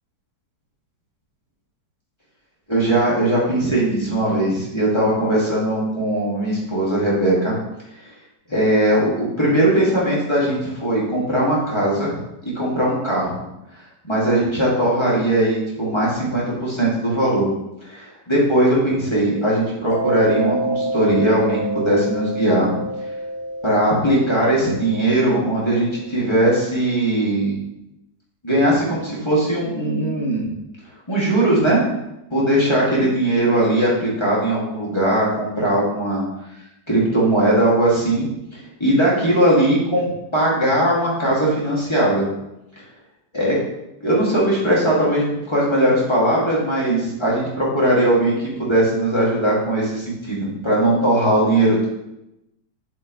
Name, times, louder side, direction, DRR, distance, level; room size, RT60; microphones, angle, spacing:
voice 1, 2.7-7.5 8.0-8.1 8.5-12.1 12.4-13.4 14.0-17.5 17.8-22.7 23.6-27.6 28.4-30.4 31.1-31.8 32.3-36.2 36.9-38.3 38.8-42.2 43.3-43.5 44.0-51.9, right 1 dB, 15° left, -7 dB, 2.3 m, -19 dB
Mallet percussion, 19.9-26.3, right 1 dB, 75° left, 1.4 m, -28 dB
7.8 x 6.8 x 3.2 m, 0.89 s
omnidirectional pair, 1.9 m